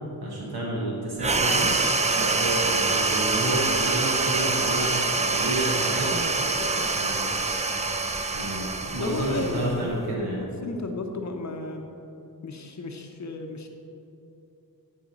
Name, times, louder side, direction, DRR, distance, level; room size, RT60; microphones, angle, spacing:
voice 1, 0.2-1.7 2.2-5.0 5.3-7.3 8.3-10.4, right 1 dB, 80° right, -5 dB, 1.4 m, -30 dB
sound 1, 1.2-10.1, right 3 dB, 20° right, 0.4 m, -25 dB
voice 2, 8.8-10.3 10.6-11.9 12.4-13.7, left 3 dB, 50° left, 3 dB, 0.7 m, -34 dB
11.0 x 4.8 x 4.2 m, 2.8 s
wide cardioid pair, 105°, 37 cm